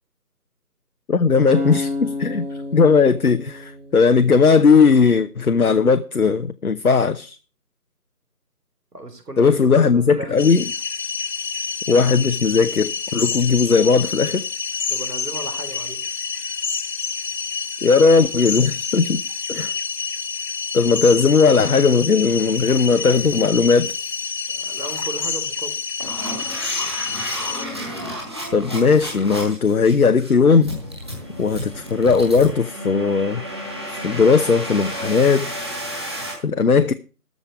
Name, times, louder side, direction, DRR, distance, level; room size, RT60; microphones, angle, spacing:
voice 1, 1.1-2.5 2.7-7.4 9.4-10.7 11.9-14.4 17.8-19.2 19.5-19.7 20.7-23.9 28.5-30.7 31.4-33.4 33.9-35.5 36.4-36.9, left 5 dB, 65° left, 0.8 m, -17 dB
sound 1, 1.5-4.6, left 2 dB, 35° right, 3.0 m, -30 dB
voice 2, 8.9-10.4 14.9-16.0 24.5-25.8, right 2 dB, 75° right, 3.9 m, -34 dB
sound 2, 10.4-27.6, left 5 dB, 80° left, 1.1 m, -28 dB
sound 3, 22.6-22.8 23.1-23.4 23.8-24.2 24.7-25.0 25.6-36.3, equal, 15° right, 2.1 m, -32 dB
13.5 x 5.1 x 8.2 m
figure-of-eight pair, 175°, 48 cm